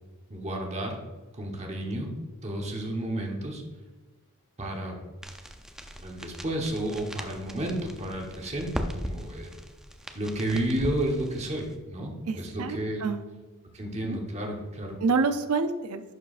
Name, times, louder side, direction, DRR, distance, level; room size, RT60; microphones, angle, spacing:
voice 1, 0.3-1.0 1.3-2.1 2.4-3.6 4.6-5.0 6.0-9.5 10.1-13.0 13.7-15.0, right 1 dB, 30° right, 1 dB, 1.1 m, -31 dB
sound 1, 5.2-11.8, equal, 5° right, 0.4 m, -39 dB
voice 2, 12.3-13.2 14.0-14.2 15.0-16.0, right 4 dB, 75° right, 10 dB, 0.5 m, -27 dB
11.0 x 4.7 x 2.5 m, 1.3 s
head